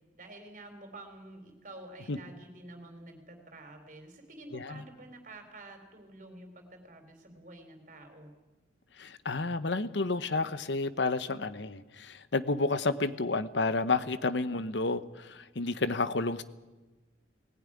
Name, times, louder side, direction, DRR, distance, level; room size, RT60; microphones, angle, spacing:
voice 1, 0.1-8.3, right 2 dB, 45° right, 5 dB, 3.9 m, -49 dB
voice 2, 9.0-16.4, left 3 dB, 75° left, 13 dB, 0.9 m, -30 dB
19.0 x 16.0 x 9.9 m, 1.2 s
head